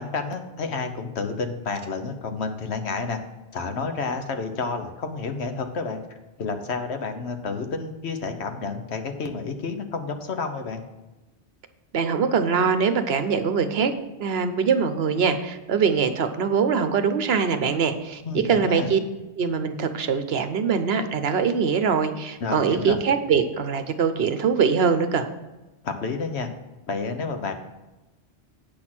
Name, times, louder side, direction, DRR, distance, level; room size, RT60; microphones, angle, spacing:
voice 1, 0.0-3.2 3.5-6.0 6.4-10.8 18.3-18.9 22.4-23.0 25.8-26.5 26.9-27.5, left 4 dB, 75° left, 7 dB, 1.2 m, -30 dB
voice 2, 11.9-13.9 14.2-19.0 19.4-25.3, right 6 dB, 65° right, 9 dB, 1.0 m, -23 dB
8.4 x 6.3 x 6.0 m, 1.1 s
omnidirectional pair, 1.1 m